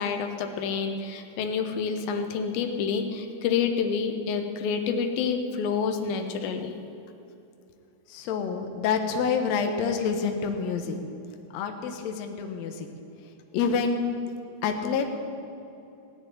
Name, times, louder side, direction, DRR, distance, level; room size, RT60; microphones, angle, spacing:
voice 1, 0.0-6.7, left 6 dB, 90° left, 6 dB, 2.8 m, -28 dB
voice 2, 8.1-11.0 11.5-12.9 13.5-14.0 14.6-15.1, left 5 dB, 65° left, 5 dB, 1.9 m, -27 dB
17.0 x 6.9 x 9.9 m, 2.7 s
omnidirectional pair, 4.1 m